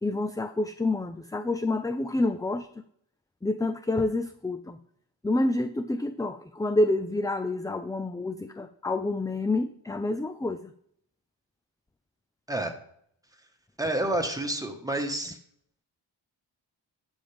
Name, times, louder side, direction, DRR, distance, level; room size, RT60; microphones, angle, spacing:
voice 1, 0.0-2.7 3.4-4.8 5.2-10.7, left 2 dB, 10° left, 9 dB, 0.3 m, -28 dB
voice 2, 13.8-15.4, right 1 dB, 5° right, 4 dB, 1.5 m, -29 dB
11.5 x 7.1 x 3.5 m, 0.68 s
cardioid pair, 60°, 49 cm